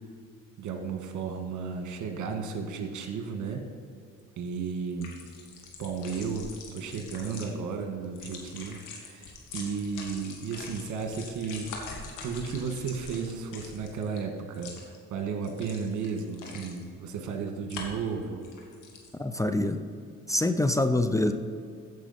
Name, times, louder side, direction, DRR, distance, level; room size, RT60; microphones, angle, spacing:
voice 1, 0.6-3.6 4.4-5.2 5.8-14.7 15.1-18.4, right 5 dB, 80° right, 4 dB, 1.5 m, -34 dB
sound 1, 4.9-7.5 8.0-14.2 14.5-15.0 15.4-16.8 17.7-18.1 18.4-19.1, left 4 dB, 85° left, 1.8 m, -44 dB
voice 2, 19.2-19.8 20.3-21.3, left 1 dB, 10° left, 8 dB, 0.5 m, -25 dB
15.0 x 5.5 x 4.2 m, 2.3 s
cardioid pair, 90°, 30 cm